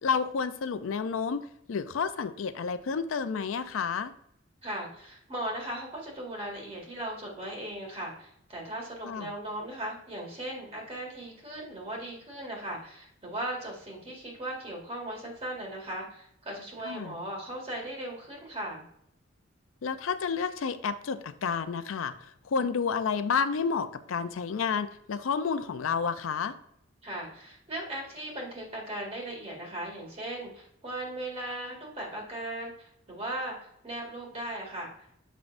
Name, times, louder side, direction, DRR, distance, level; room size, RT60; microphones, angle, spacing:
voice 1, 0.0-4.1 9.0-9.3 16.9-17.2 19.8-26.6, left 5 dB, 85° left, 12 dB, 0.4 m, -30 dB
voice 2, 4.6-18.8 27.0-35.2, right 1 dB, 30° right, -1 dB, 1.9 m, -38 dB
7.2 x 6.0 x 2.6 m, 0.72 s
head